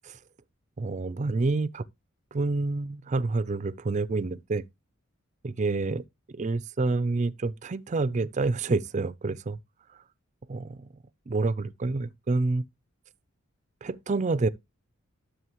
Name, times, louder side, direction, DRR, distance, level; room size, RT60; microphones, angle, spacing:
voice 1, 0.8-1.8 2.3-4.6 5.4-6.0 6.3-9.6 10.5-10.8 11.3-12.6 13.8-14.5, right 3 dB, 35° right, 0.4 m, -28 dB
11.0 x 6.3 x 3.0 m
head